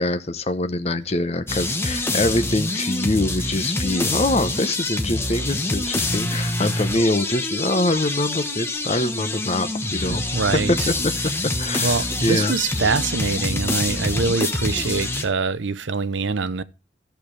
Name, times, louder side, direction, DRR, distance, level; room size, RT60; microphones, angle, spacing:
voice 1, 0.0-10.2 10.5-11.1 11.4-12.6, left 2 dB, 35° left, 0.8 m, -24 dB
sound 1, 1.5-15.2, left 2 dB, 15° left, 1.1 m, -26 dB
voice 2, 9.8-10.9 11.2-11.3 11.8-16.6, right 4 dB, 75° right, 0.7 m, -24 dB
13.5 x 6.8 x 3.2 m
head